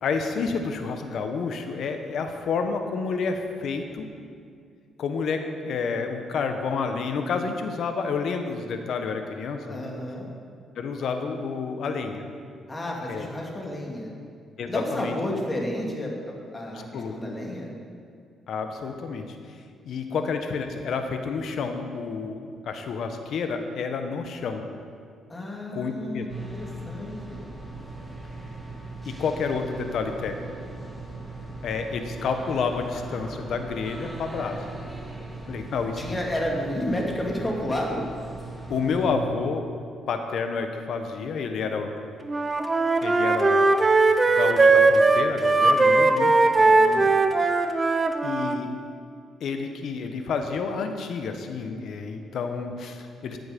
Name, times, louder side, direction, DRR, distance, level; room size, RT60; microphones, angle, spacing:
voice 1, 0.0-4.1 5.0-9.9 10.8-12.2 13.1-13.3 14.6-15.1 16.9-17.1 18.5-19.4 19.8-24.6 25.7-26.3 29.1-30.5 31.6-34.6 35.5-36.2 38.7-39.7 40.1-41.9 43.0-43.7 44.3-46.3 48.2-48.7 49.4-53.4, left 5 dB, 65° left, 6 dB, 1.2 m, -29 dB
voice 2, 9.6-10.3 12.7-14.2 14.7-17.7 25.3-27.4 36.0-38.0 46.6-47.1, left 1 dB, 20° left, -2 dB, 2.6 m, -31 dB
sound 1, 26.3-39.1, right 2 dB, 5° right, 2.2 m, -39 dB
Wind instrument woodwind instrument, 42.3-48.6, right 3 dB, 25° right, 0.7 m, -19 dB
14.0 x 7.9 x 5.4 m, 2.3 s
cardioid pair, 90°, 0 cm